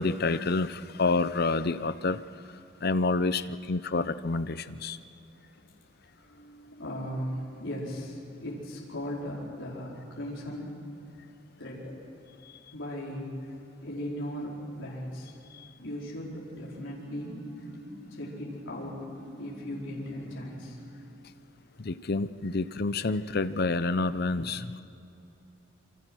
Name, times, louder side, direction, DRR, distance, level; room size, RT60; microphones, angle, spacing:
voice 1, 0.0-2.2 2.8-5.0 21.8-24.8, left 3 dB, 50° left, 13 dB, 0.7 m, -28 dB
voice 2, 6.1-10.8 11.6-11.9 12.7-13.4 13.8-15.3 15.8-17.4 18.1-19.1 19.4-20.8 24.7-24.8, equal, 70° left, -5 dB, 4.9 m, -38 dB
sound 1, 16.4-21.3, equal, 80° right, 5.6 m, -47 dB
28.0 x 25.0 x 6.4 m, 2.9 s
head